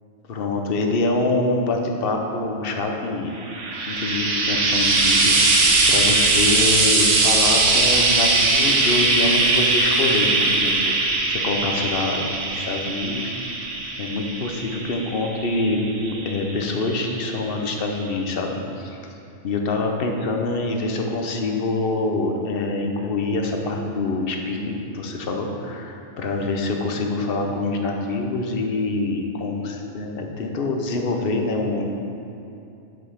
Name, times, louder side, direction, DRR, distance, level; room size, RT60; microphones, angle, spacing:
voice 1, 0.3-3.3 3.9-5.4 5.9-13.3 14.0-19.1 19.4-31.9, left 2 dB, 55° left, 2 dB, 1.0 m, -25 dB
Frying (food), 3.4-16.8 17.8-17.9, right 3 dB, 85° right, 1.2 m, -20 dB
5.9 x 5.3 x 6.4 m, 2.7 s
omnidirectional pair, 1.2 m